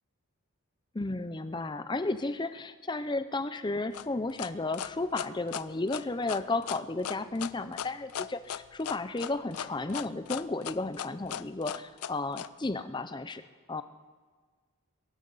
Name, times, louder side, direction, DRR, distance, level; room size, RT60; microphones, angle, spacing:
voice 1, 0.9-13.4 13.7-13.8, left 2 dB, 20° left, 11 dB, 0.5 m, -33 dB
sound 1, 3.9-12.5, left 9 dB, 85° left, 0.4 m, -37 dB
22.0 x 11.5 x 4.0 m, 1.5 s
head